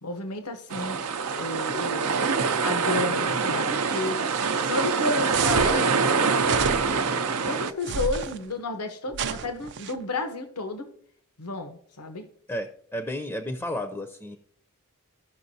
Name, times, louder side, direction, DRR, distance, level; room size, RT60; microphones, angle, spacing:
voice 1, 0.0-1.0 1.4-2.2 2.6-4.2 4.6-6.7 7.4-10.9 11.4-12.3, left 2 dB, 90° left, 7 dB, 0.9 m, -32 dB
sound 1, 0.7-7.7, right 5 dB, 85° right, 0.6 m, -25 dB
sound 2, 5.3-5.8 6.4-7.1 7.8-8.4 9.1-9.9, right 6 dB, 50° right, 0.4 m, -30 dB
voice 2, 12.5-14.4, left 1 dB, 10° left, 5 dB, 0.5 m, -32 dB
14.5 x 5.9 x 2.7 m, 0.64 s
head